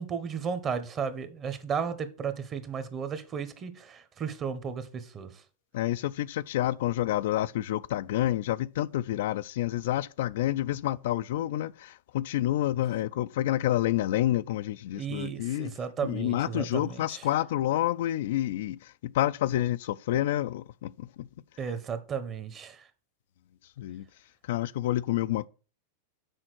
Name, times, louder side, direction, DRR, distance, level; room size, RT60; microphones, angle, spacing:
voice 1, 0.0-5.3 15.0-17.2 21.6-22.8, right 6 dB, 30° right, 1.0 m, -34 dB
voice 2, 5.7-15.7 16.0-21.3 23.8-24.1 24.4-25.5, left 13 dB, 70° left, 0.3 m, -29 dB
6.3 x 4.4 x 6.1 m
hypercardioid pair, 115°, 0 cm